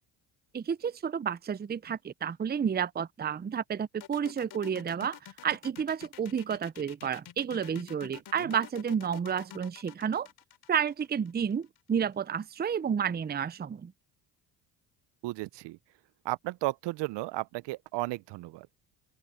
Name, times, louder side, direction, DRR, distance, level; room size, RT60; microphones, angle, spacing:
voice 1, 0.5-10.3 10.7-13.9, right 7 dB, 20° right, 0.7 m, -31 dB
sound 1, 4.0-11.8, left 11 dB, 55° left, 3.8 m, -48 dB
voice 2, 15.2-15.8 16.2-18.7, right 19 dB, 60° right, 0.9 m, -34 dB
open air
hypercardioid pair, 60°, 47 cm